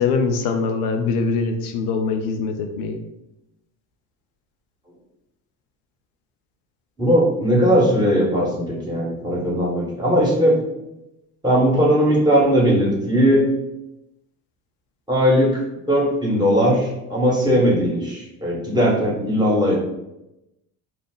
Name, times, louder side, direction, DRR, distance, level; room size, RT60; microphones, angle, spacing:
voice 1, 0.0-3.0, left 4 dB, 75° left, 5 dB, 0.5 m, -23 dB
voice 2, 7.0-10.6 11.4-13.5 15.1-19.8, equal, 10° right, -5 dB, 1.2 m, -18 dB
2.4 x 2.0 x 3.7 m, 0.89 s
hypercardioid pair, 70°, 45 cm